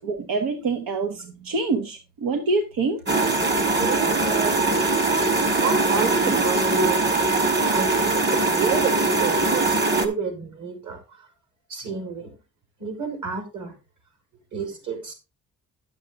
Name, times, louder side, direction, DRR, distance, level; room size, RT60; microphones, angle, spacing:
voice 1, 0.0-3.0, right 3 dB, 90° right, 6 dB, 1.2 m, -26 dB
sound 1, 3.1-10.1, right 2 dB, 35° right, 1.8 m, -21 dB
voice 2, 3.8-4.8 5.1-7.2 7.7-11.3 11.7-12.3 12.8-13.7 14.5-15.1, right 5 dB, 60° right, 3 dB, 4.8 m, -30 dB
10.5 x 7.4 x 3.7 m, 0.29 s
cardioid pair, 135°, 34 cm